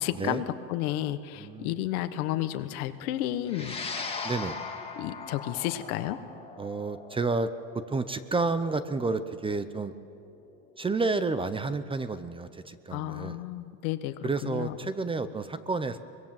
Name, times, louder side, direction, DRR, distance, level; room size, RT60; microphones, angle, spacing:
voice 1, 0.0-3.7 5.0-6.2 12.9-14.8, left 13 dB, 85° left, 10 dB, 1.5 m, -32 dB
voice 2, 1.4-1.9 4.2-4.6 6.6-7.5 7.7-9.9 10.8-13.4 14.2-16.0, right 3 dB, 15° right, 12 dB, 0.6 m, -30 dB
sound 1, 3.5-12.0, left 4 dB, 15° left, 2.0 m, -40 dB
24.0 x 21.5 x 7.4 m, 2.5 s
supercardioid pair, 135°, 42 cm